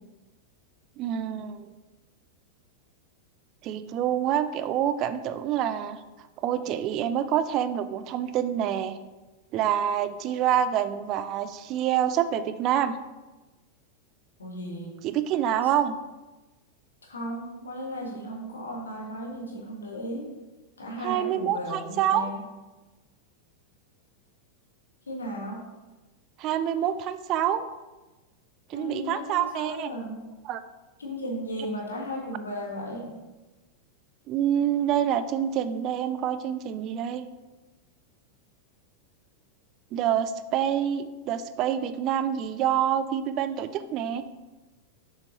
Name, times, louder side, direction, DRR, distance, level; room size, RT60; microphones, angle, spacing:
voice 1, 1.0-1.7 3.6-6.0 6.4-9.0 9.5-12.9 15.0-16.0 21.0-22.3 26.4-27.7 28.7-29.9 30.4-30.6 34.3-37.2 39.9-44.2, right 10 dB, 40° right, 11 dB, 0.4 m, -27 dB
voice 2, 14.4-14.9 17.1-20.3 20.8-22.4 25.1-25.6 28.7-30.2 31.0-33.1, equal, 75° left, -1 dB, 1.5 m, -35 dB
6.6 x 5.5 x 3.0 m, 1.1 s
figure-of-eight pair, 90°, 0 cm